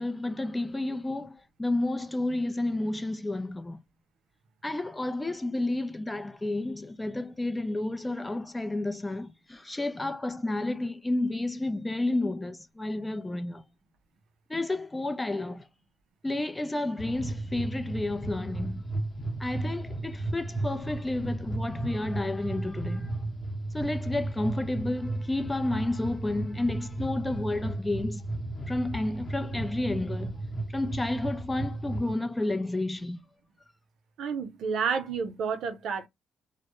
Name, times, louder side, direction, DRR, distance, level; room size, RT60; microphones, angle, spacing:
voice 1, 0.0-3.8 4.6-13.6 14.5-15.6 16.2-18.8 19.4-23.1 23.7-28.2 28.7-30.3 30.7-33.2, left 2 dB, 15° left, 0.5 m, -31 dB
sound 1, 17.0-32.1, right 2 dB, 40° left, 0.9 m, -34 dB
voice 2, 34.2-36.1, right 6 dB, 75° right, 0.5 m, -30 dB
2.1 x 2.0 x 2.9 m
supercardioid pair, 65°, 0 cm